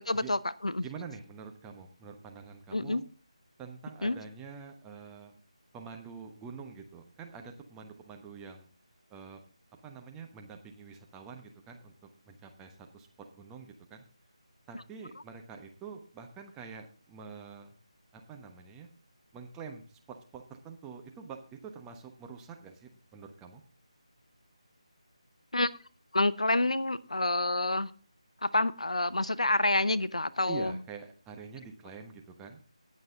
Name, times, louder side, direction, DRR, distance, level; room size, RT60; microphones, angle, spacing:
voice 1, 0.1-0.8 2.7-3.0 4.0-4.2 25.5-25.7 26.1-27.9 28.4-30.7, left 2 dB, 75° left, 0.8 m, -28 dB
voice 2, 0.8-3.0 3.6-5.3 5.7-8.7 9.1-9.4 9.8-11.9 12.3-13.1 13.3-14.0 14.7-17.7 18.1-18.9 19.3-23.6 30.5-32.6, right 5 dB, 10° right, 1.1 m, -46 dB
18.5 x 6.6 x 3.7 m
figure-of-eight pair, 160°, 3 cm